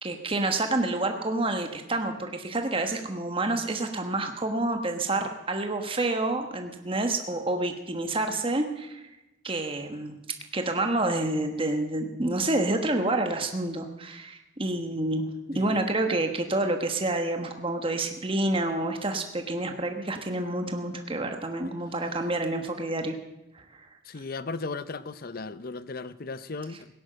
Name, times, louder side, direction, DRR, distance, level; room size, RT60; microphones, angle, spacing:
voice 1, 0.0-9.0 9.4-10.2 10.5-23.2 23.5-23.9, right 2 dB, 25° right, 1.3 m, -28 dB
voice 2, 15.5-15.9 24.0-26.9, left 3 dB, 45° left, 0.6 m, -36 dB
17.0 x 11.0 x 7.7 m
head